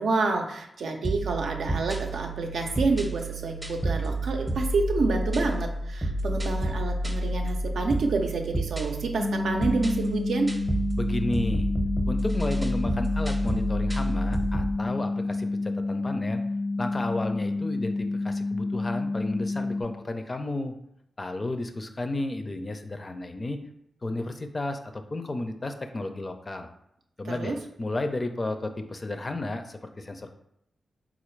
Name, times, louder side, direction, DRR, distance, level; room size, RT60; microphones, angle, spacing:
voice 1, 0.0-10.5 27.2-27.6, right 3 dB, 80° right, 3 dB, 0.5 m, -28 dB
sound 1, 1.0-14.8, right 1 dB, 25° right, 0.6 m, -30 dB
sound 2, 9.2-19.8, left 3 dB, 85° left, 0.6 m, -29 dB
voice 2, 11.0-11.7 12.1-16.4 16.8-20.7 21.2-23.6 24.0-26.7 27.2-30.3, left 2 dB, 35° left, 7 dB, 0.4 m, -32 dB
3.8 x 2.4 x 3.1 m, 0.78 s
cardioid pair, 60°, 0 cm